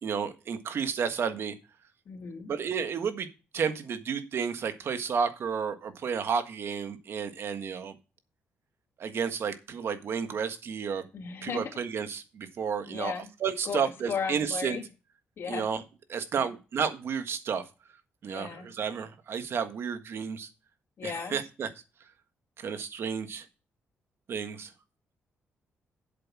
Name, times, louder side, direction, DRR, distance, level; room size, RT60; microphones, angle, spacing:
voice 1, 0.0-1.5 2.5-3.3 3.5-7.9 9.0-11.1 11.4-14.8 15.5-15.8 16.1-17.6 18.2-20.5 21.0-21.7 22.6-23.4 24.3-24.7, right 6 dB, 60° right, 9 dB, 1.6 m, -31 dB
voice 2, 2.1-2.5 11.1-11.7 12.9-13.3 13.6-14.8 15.4-15.7 16.3-16.5 18.3-18.7 21.0-21.4, left 6 dB, 60° left, 2 dB, 2.6 m, -36 dB
8.0 x 7.7 x 6.0 m, 0.31 s
cardioid pair, 95°, 5 cm